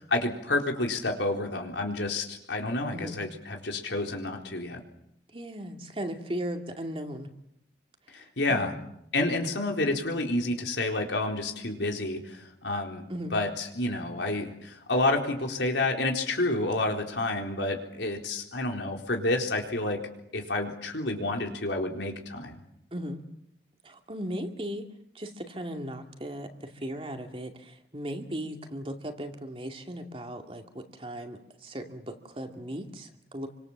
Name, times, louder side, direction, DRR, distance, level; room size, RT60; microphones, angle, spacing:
voice 1, 0.1-4.8 8.1-8.8 9.1-13.0 13.3-20.0 20.3-22.6, left 2 dB, 85° left, 2 dB, 4.1 m, -29 dB
voice 2, 5.3-7.3 8.5-8.8 13.1-13.3 22.9-23.2 23.8-24.8 25.1-33.5, equal, 30° right, 4 dB, 2.4 m, -37 dB
27.5 x 25.0 x 7.4 m, 0.78 s
head